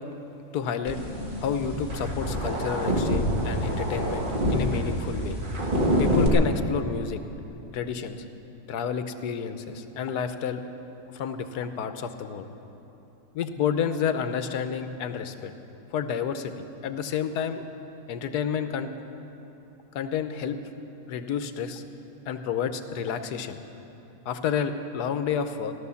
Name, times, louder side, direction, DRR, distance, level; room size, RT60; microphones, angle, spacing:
voice 1, 0.5-1.0 1.4-5.4 6.0-7.2 7.7-8.2 8.7-10.6 11.1-12.5 13.3-15.5 15.9-17.6 18.1-18.9 19.9-20.6 21.1-21.8 22.3-23.6 24.3-25.7, left 7 dB, 85° left, 9 dB, 1.3 m, -30 dB
sound 1, 0.9-6.3, equal, 35° right, 1.6 m, -26 dB
15.0 x 12.0 x 7.0 m, 3.0 s
omnidirectional pair, 1.6 m